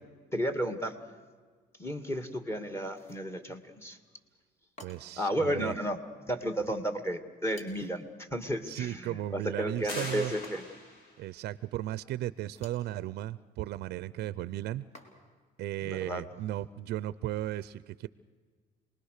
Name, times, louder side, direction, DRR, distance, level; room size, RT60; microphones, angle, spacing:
voice 1, 0.3-1.0 1.8-4.0 5.2-6.0 6.3-10.6 15.8-16.2, equal, 15° left, 8 dB, 2.2 m, -33 dB
sound 1, 2.9-3.3 4.8-5.3 7.5-8.0 10.4-11.0 12.4-12.9 14.9-15.5, left 1 dB, 40° left, 3.8 m, -53 dB
voice 2, 4.8-5.7 8.7-10.3 11.2-14.8 15.6-18.1, right 14 dB, 75° right, 17 dB, 0.6 m, -35 dB
sound 2, 9.9-11.2, left 1 dB, 75° left, 6.2 m, -41 dB
28.0 x 20.5 x 6.6 m, 1.5 s
cardioid pair, 110°, 17 cm